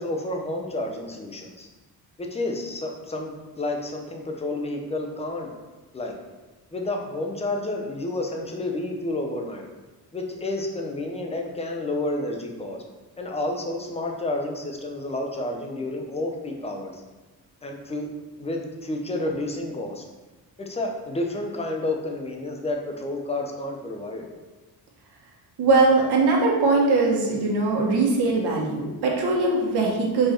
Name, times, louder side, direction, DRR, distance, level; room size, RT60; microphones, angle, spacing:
voice 1, 0.0-1.7 2.2-5.5 5.9-6.1 6.7-9.7 10.1-12.8 13.2-17.0 17.6-18.1 18.4-20.0 20.6-24.3, left 2 dB, 15° left, 1 dB, 0.8 m, -30 dB
voice 2, 25.6-30.3, right 3 dB, 70° right, -1 dB, 1.4 m, -21 dB
5.1 x 4.9 x 4.4 m, 1.2 s
cardioid pair, 140°, 40 cm